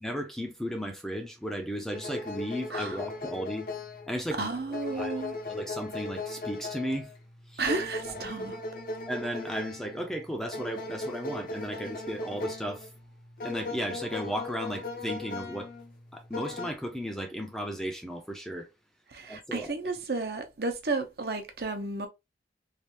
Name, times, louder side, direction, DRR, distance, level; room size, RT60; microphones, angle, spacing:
voice 1, 0.0-3.7 4.1-4.5 4.9-5.2 5.5-7.1 7.5-7.7 8.0-8.2 9.1-12.9 13.4-15.7 16.1-18.7 19.3-19.7, equal, ahead, 0.5 m, -35 dB
sound 1, 1.9-16.7, left 2 dB, 55° left, 0.6 m, -38 dB
voice 2, 4.4-5.3 7.6-8.6 19.1-22.1, right 3 dB, 65° right, 0.8 m, -32 dB
3.3 x 2.5 x 2.9 m
head